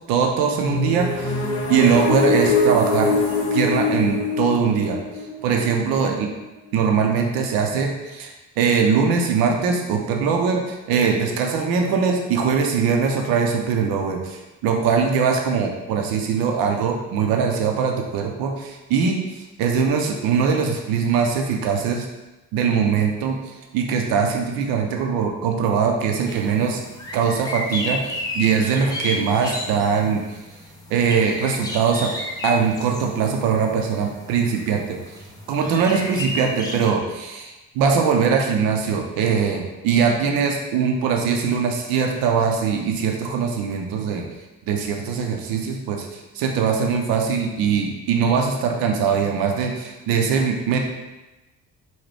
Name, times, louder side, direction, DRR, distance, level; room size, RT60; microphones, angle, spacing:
voice 1, 0.1-1.3 1.7-3.1 3.5-5.0 5.4-6.3 6.7-22.1 22.5-23.4 23.7-26.8 27.1-30.4 30.9-32.1 32.4-35.0 35.5-44.3 44.7-50.8, right 6 dB, 55° right, 2 dB, 0.5 m, -21 dB
sound 1, 0.6-6.4, left 2 dB, 65° left, 0.8 m, -23 dB
sound 2, 26.3-36.9, left 1 dB, 10° left, 0.4 m, -33 dB
2.7 x 2.3 x 3.3 m, 1.1 s
figure-of-eight pair, 45°, 45 cm